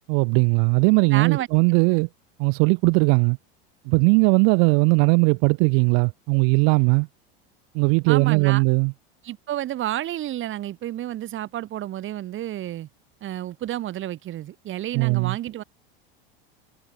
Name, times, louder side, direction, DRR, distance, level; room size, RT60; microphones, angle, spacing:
voice 1, 0.1-2.1 2.4-3.4 3.9-7.1 7.7-8.9 14.9-15.4, right 40 dB or more, 60° right, 2.4 m, -19 dB
voice 2, 1.1-1.5 1.9-2.0 8.1-8.6 9.2-12.9 13.2-15.6, right 13 dB, 40° right, 4.5 m, -30 dB
supercardioid pair, 110°, 30 cm